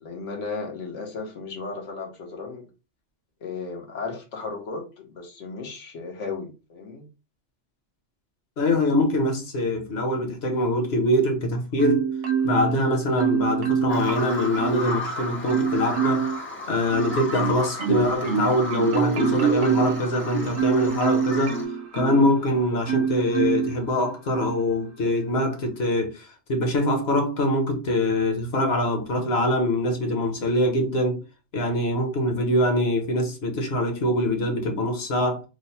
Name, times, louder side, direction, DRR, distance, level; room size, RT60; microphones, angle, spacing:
voice 1, 0.0-2.7 3.4-7.1, left 4 dB, 80° left, 1.2 m, -35 dB
voice 2, 8.6-12.1 12.4-16.3 16.7-21.6 21.9-31.2 31.5-35.4, left 1 dB, 60° left, 1.1 m, -24 dB
Marimba xylophone, 11.8-12.8 13.2-15.0 15.5-16.4 16.9-22.4 22.9-23.7 24.3-24.5, right 7 dB, 70° right, 0.9 m, -25 dB
Bird vocalization bird call bird song, 13.9-21.6, left 2 dB, 15° left, 0.4 m, -34 dB
3.2 x 2.0 x 4.0 m
omnidirectional pair, 1.3 m